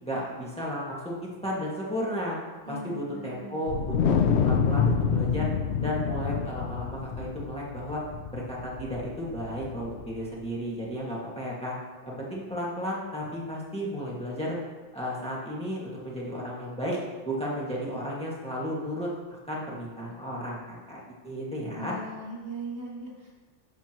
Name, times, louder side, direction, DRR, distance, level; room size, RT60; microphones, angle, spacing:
voice 1, 0.0-2.4 2.7-5.5 5.8-8.0 8.3-11.7 12.1-14.6 14.9-17.0 17.3-21.9, equal, 5° left, -5 dB, 1.7 m, -33 dB
voice 2, 2.6-3.6 21.7-23.4, right 1 dB, 65° right, -5 dB, 2.5 m, -39 dB
Wind, 3.7-10.2, left 6 dB, 70° left, 0.8 m, -27 dB
12.5 x 7.1 x 3.0 m, 1.3 s
omnidirectional pair, 1.2 m